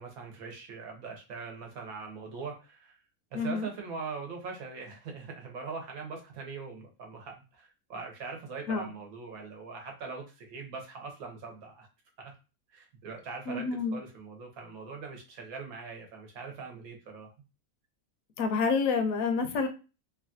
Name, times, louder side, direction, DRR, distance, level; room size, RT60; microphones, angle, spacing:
voice 1, 0.0-3.0 3.3-11.9 12.2-12.3 12.7-13.6 13.9-17.3, right 4 dB, 85° right, 3 dB, 1.2 m, -42 dB
voice 2, 3.3-3.7 8.7-8.9 13.5-14.0 18.4-19.7, left 4 dB, 75° left, 7 dB, 1.0 m, -28 dB
3.1 x 2.3 x 2.5 m, 0.31 s
omnidirectional pair, 1.5 m